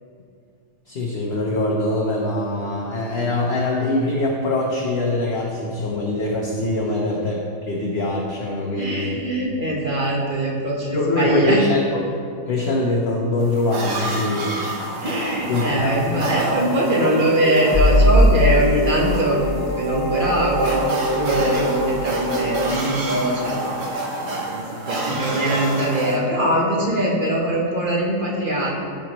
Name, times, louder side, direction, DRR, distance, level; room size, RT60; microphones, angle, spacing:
voice 1, 0.9-9.2 10.9-12.1 12.5-14.6 15.5-16.2, left 2 dB, 50° left, -3 dB, 1.0 m, -23 dB
voice 2, 8.7-11.7 15.0-20.8 21.0-28.7, right 1 dB, 35° right, -4 dB, 1.3 m, -22 dB
sound 1, 13.4-26.2, right 2 dB, 50° right, 1.4 m, -30 dB
sound 2, 16.8-22.6, equal, 20° right, 0.8 m, -21 dB
14.0 x 5.0 x 3.0 m, 2.4 s
omnidirectional pair, 1.7 m